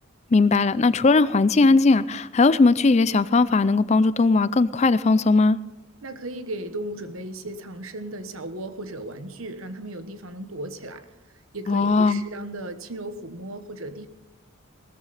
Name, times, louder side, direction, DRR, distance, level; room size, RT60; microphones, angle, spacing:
voice 1, 0.3-5.6 11.7-12.2, left 3 dB, 30° left, 17 dB, 0.4 m, -18 dB
voice 2, 6.0-11.1 11.5-14.1, right 1 dB, 75° right, 10 dB, 1.3 m, -35 dB
18.0 x 13.5 x 4.1 m, 1.1 s
head